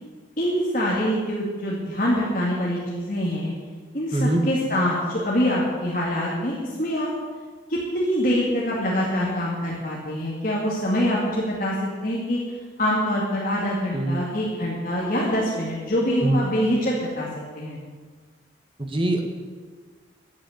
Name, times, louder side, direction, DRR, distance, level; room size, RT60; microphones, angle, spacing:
voice 1, 0.4-3.5 3.9-7.1 7.7-11.7 12.0-12.4 12.8-17.3 17.5-17.8, equal, 45° left, -5 dB, 2.2 m, -24 dB
voice 2, 4.1-4.4 13.9-14.2 16.2-16.4 18.8-19.2, right 1 dB, 30° right, 4 dB, 1.5 m, -22 dB
11.5 x 8.3 x 9.4 m, 1.5 s
head